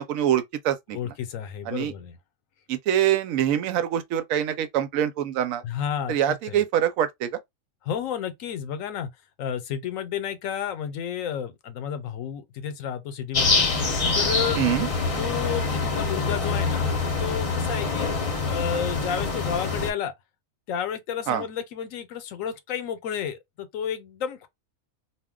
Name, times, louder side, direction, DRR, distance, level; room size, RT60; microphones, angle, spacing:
voice 1, 0.0-1.1 1.7-1.9 2.7-5.6 6.1-7.4 14.6-14.9 21.3-21.5, right 10 dB, 85° right, 1.0 m, -25 dB
voice 2, 0.9-2.2 5.6-6.6 7.9-9.1 9.4-13.7 14.1-14.6 15.2-18.1 18.4-20.1 20.7-24.5, left 8 dB, 80° left, 1.0 m, -31 dB
sound 1, 13.3-19.9, left 4 dB, 35° left, 0.6 m, -25 dB
2.3 x 2.2 x 3.6 m
omnidirectional pair, 1.4 m